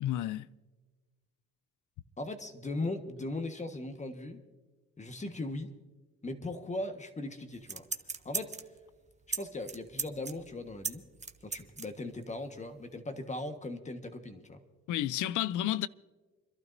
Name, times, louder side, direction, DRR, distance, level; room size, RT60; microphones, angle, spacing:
voice 1, 0.0-0.5 14.9-15.9, left 13 dB, 85° left, 0.5 m, -31 dB
voice 2, 2.2-4.4 5.0-5.7 6.2-7.8 8.2-8.6 9.3-11.0 11.4-14.6, left 2 dB, 25° left, 1.4 m, -38 dB
sound 1, 7.6-8.8 9.3-9.4 9.7-11.9 12.2-12.3, right 4 dB, 25° right, 0.9 m, -36 dB
29.5 x 12.0 x 2.7 m
cardioid pair, 90°, 30 cm